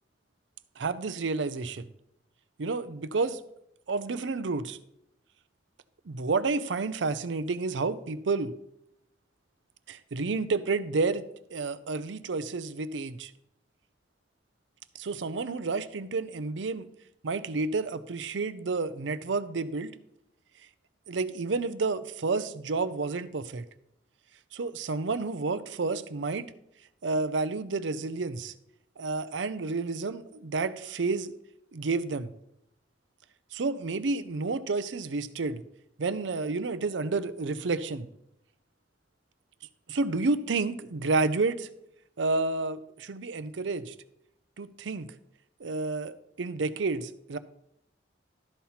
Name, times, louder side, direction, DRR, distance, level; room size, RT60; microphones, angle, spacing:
voice 1, 0.8-1.8 2.6-3.4 3.9-4.8 6.1-8.5 9.9-11.2 11.5-13.3 15.0-16.9 17.2-19.9 21.1-23.6 24.5-26.5 27.0-28.5 29.0-31.3 31.7-32.3 33.5-35.6 36.0-38.1 39.9-41.7 42.2-43.9 44.6-45.1 45.6-47.4, right 3 dB, 85° right, 13 dB, 0.6 m, -30 dB
12.5 x 4.3 x 5.7 m, 0.79 s
head